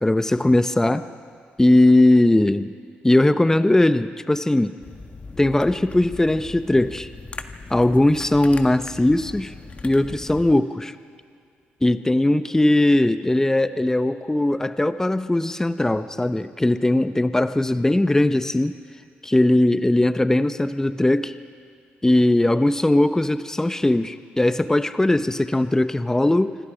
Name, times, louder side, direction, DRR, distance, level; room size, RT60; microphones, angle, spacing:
voice 1, 0.0-1.0 1.6-2.7 3.0-4.7 5.4-7.1 7.7-9.5 9.8-10.9 11.8-18.8 19.2-21.3 22.0-26.6, left 1 dB, 10° left, 12 dB, 0.8 m, -19 dB
sound 1, 4.8-10.5, left 3 dB, 30° left, 1.6 m, -39 dB
27.0 x 25.5 x 5.1 m, 2.2 s
supercardioid pair, 60°, 4 cm